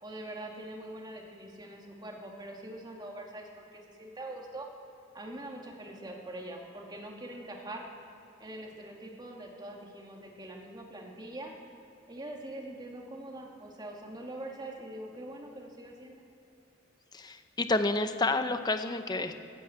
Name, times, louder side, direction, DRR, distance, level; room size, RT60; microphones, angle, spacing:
voice 1, 0.0-4.7 5.1-7.9 8.4-11.5 12.1-16.2, right 1 dB, 20° right, 0 dB, 2.0 m, -43 dB
voice 2, 17.1-19.4, left 2 dB, 20° left, 8 dB, 0.8 m, -29 dB
14.5 x 9.4 x 8.8 m, 2.8 s
head